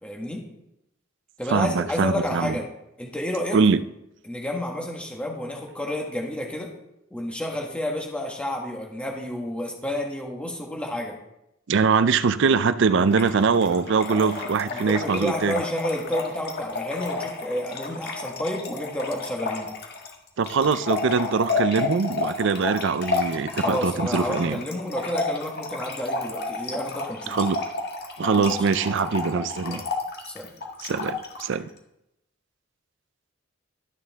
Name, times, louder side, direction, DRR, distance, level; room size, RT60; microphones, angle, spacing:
voice 1, 0.0-0.4 1.4-2.7 3.0-3.6 4.2-6.7 7.1-11.2 14.7-19.7 23.5-27.4 28.3-28.6 29.7-29.8 30.2-30.5, left 1 dB, 5° left, -1 dB, 1.5 m, -30 dB
voice 2, 1.5-2.6 3.5-3.8 11.7-15.6 20.4-24.6 27.3-27.6 28.2-29.8 30.8-31.7, right 5 dB, 65° right, 14 dB, 0.5 m, -22 dB
Trickle dribble / Fill (with liquid), 13.1-31.5, left 3 dB, 55° left, 1.6 m, -31 dB
13.0 x 6.6 x 3.5 m, 0.85 s
head